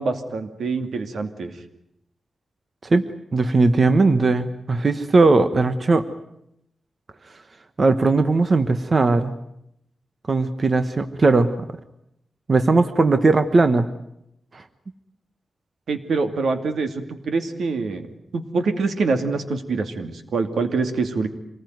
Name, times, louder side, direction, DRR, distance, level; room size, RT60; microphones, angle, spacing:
voice 1, 0.0-1.6 15.9-18.1 18.3-21.3, right 4 dB, 85° right, 8 dB, 2.5 m, -25 dB
voice 2, 3.3-6.1 7.8-9.3 10.3-11.7 12.5-13.9 14.5-14.6, right 3 dB, 35° right, 10 dB, 1.1 m, -18 dB
26.5 x 20.0 x 9.4 m, 0.78 s
wide cardioid pair, 160°, 0 cm